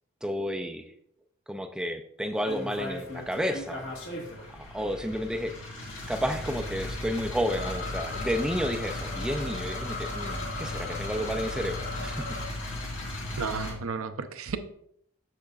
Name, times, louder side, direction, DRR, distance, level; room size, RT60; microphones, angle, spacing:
voice 1, 0.2-0.9 1.5-3.8 4.5-5.6 6.1-12.4, equal, 5° right, 6 dB, 0.4 m, -31 dB
sound 1, 2.5-13.7, left 1 dB, 60° left, 1.8 m, -36 dB
sound 2, 7.5-12.5, left 3 dB, 40° left, 0.8 m, -39 dB
voice 2, 13.4-14.6, right 5 dB, 75° right, 10 dB, 0.6 m, -32 dB
8.5 x 6.5 x 2.4 m, 0.69 s
head